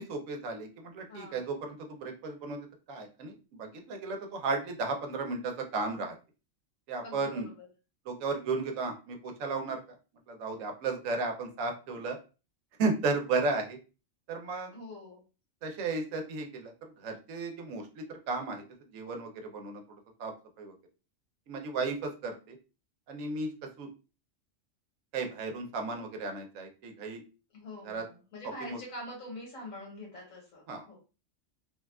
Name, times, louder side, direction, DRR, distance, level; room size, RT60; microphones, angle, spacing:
voice 1, 0.0-2.6 2.9-6.2 6.9-7.5 8.1-9.8 10.3-12.2 12.8-13.8 14.3-14.7 15.6-16.7 17.0-18.6 18.9-19.8 20.2-20.3 20.6-20.7 21.5-22.6 23.1-23.5 23.8-23.9 25.1-27.2 27.8-28.0 28.6-28.8 30.7-30.8, right 3 dB, 85° right, 4 dB, 1.0 m, -34 dB
voice 2, 1.1-1.4 7.0-7.7 14.7-15.2 27.5-30.6 30.9-31.0, left 1 dB, 80° left, -2 dB, 1.6 m, -44 dB
3.2 x 2.3 x 2.3 m, 0.32 s
omnidirectional pair, 1.4 m